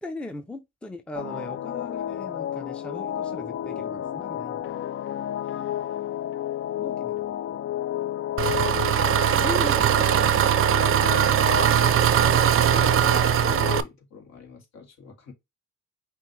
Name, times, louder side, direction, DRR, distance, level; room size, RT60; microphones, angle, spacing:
voice 1, 0.0-4.8 6.8-7.3 9.4-10.3, left 2 dB, 5° left, 0.6 m, -38 dB
sound 1, 1.2-13.8, left 11 dB, 45° left, 0.4 m, -31 dB
Engine, 8.4-13.8, right 10 dB, 45° right, 0.5 m, -20 dB
voice 2, 13.4-15.3, left 5 dB, 60° left, 2.0 m, -45 dB
5.4 x 2.6 x 3.1 m
cardioid pair, 90°, 30 cm